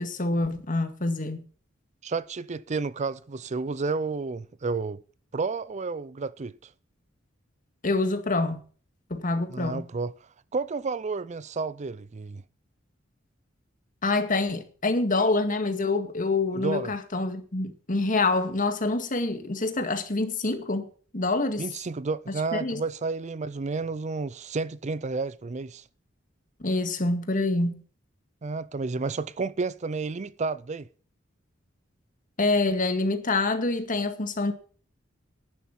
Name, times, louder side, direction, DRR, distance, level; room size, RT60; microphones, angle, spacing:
voice 1, 0.0-1.4 7.8-8.6 9.1-9.8 14.0-20.9 21.1-21.7 22.5-22.8 26.6-27.8 32.4-34.5, left 3 dB, 45° left, 1.9 m, -26 dB
voice 2, 2.0-5.0 5.3-6.5 9.5-10.1 10.5-12.4 16.5-16.9 21.6-25.8 28.4-30.9, right 4 dB, 35° right, 0.5 m, -31 dB
11.5 x 10.0 x 5.4 m
head